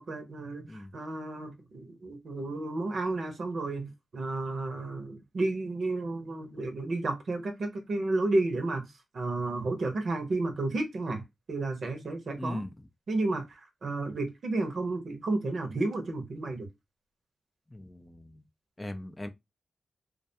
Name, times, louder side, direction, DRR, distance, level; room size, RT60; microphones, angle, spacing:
voice 1, 0.1-8.9 9.1-11.2 11.5-12.6 13.1-13.4 13.8-16.7, right 2 dB, 65° right, 0.7 m, -32 dB
voice 2, 12.4-12.7 17.7-18.4 18.8-19.3, left 1 dB, 25° left, 0.4 m, -39 dB
2.3 x 2.2 x 2.6 m
supercardioid pair, 40°, 0 cm